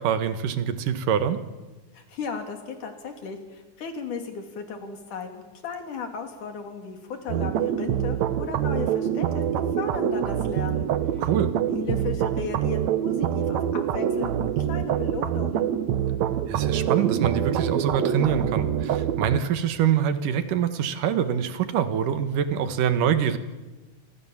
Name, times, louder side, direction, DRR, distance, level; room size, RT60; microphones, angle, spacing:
voice 1, 0.0-1.4 11.2-11.5 16.5-23.4, right 8 dB, 85° right, 10 dB, 3.1 m, -25 dB
voice 2, 1.9-10.9 11.1-11.3 11.7-15.7, left 5 dB, 75° left, 5 dB, 4.5 m, -35 dB
sound 1, 7.3-19.4, right 9 dB, 70° right, 2.2 m, -25 dB
29.5 x 26.0 x 7.3 m, 1.2 s
omnidirectional pair, 3.6 m